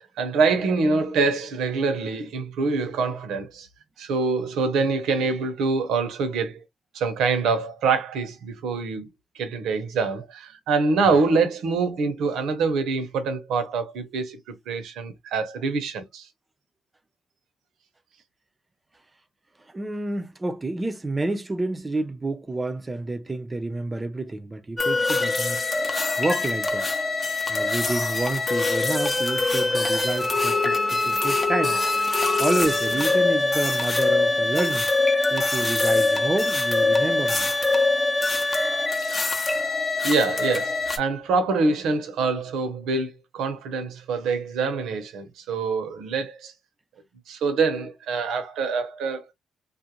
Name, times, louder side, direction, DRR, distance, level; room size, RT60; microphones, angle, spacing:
voice 1, 0.0-3.7 4.0-6.6 6.9-9.1 9.3-16.3 40.0-46.5 47.3-49.2, right 4 dB, 80° right, 0.8 m, -25 dB
voice 2, 19.7-25.6 26.2-26.9 27.5-31.8 32.4-34.9 35.3-37.5, right 2 dB, 20° right, 0.5 m, -29 dB
sound 1, 24.8-41.0, left 2 dB, 20° left, 0.6 m, -23 dB
2.4 x 2.1 x 2.8 m
cardioid pair, 90°, 0 cm